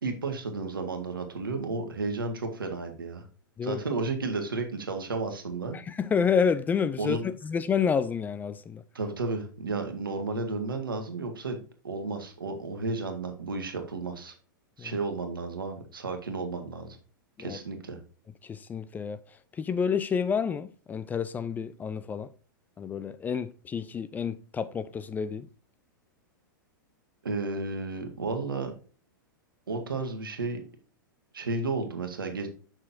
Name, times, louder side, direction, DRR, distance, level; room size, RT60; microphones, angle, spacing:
voice 1, 0.0-3.2 3.6-5.8 7.0-7.2 8.9-11.6 11.8-14.3 14.8-17.0 17.4-18.0 27.2-28.7 29.7-30.6 31.3-32.5, right 3 dB, 80° right, 1.5 m, -32 dB
voice 2, 5.7-8.8 14.8-14.9 17.4-17.6 18.5-19.2 19.6-22.3 22.8-25.5, left 6 dB, 15° left, 0.3 m, -29 dB
6.5 x 6.0 x 2.6 m
figure-of-eight pair, 100°, 11 cm